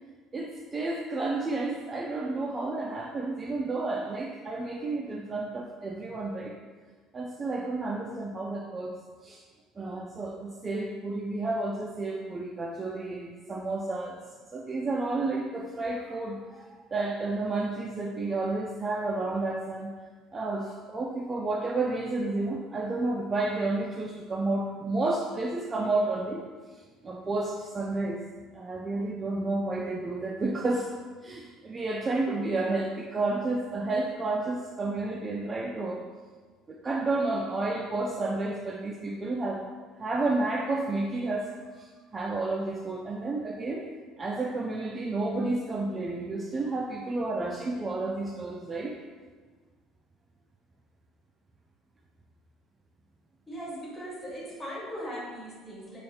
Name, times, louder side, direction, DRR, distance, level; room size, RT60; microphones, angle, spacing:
voice 1, 0.3-6.5 7.1-8.9 9.2-9.4 9.8-14.2 14.5-19.9 20.3-26.4 27.0-28.2 28.5-30.9 31.2-36.0 36.7-39.7 40.0-43.9 44.2-48.9, right 2 dB, 25° right, -1 dB, 0.3 m, -31 dB
voice 2, 53.5-56.0, equal, 20° left, -5 dB, 1.2 m, -39 dB
3.2 x 2.4 x 4.2 m, 1.4 s
cardioid pair, 115°, 0 cm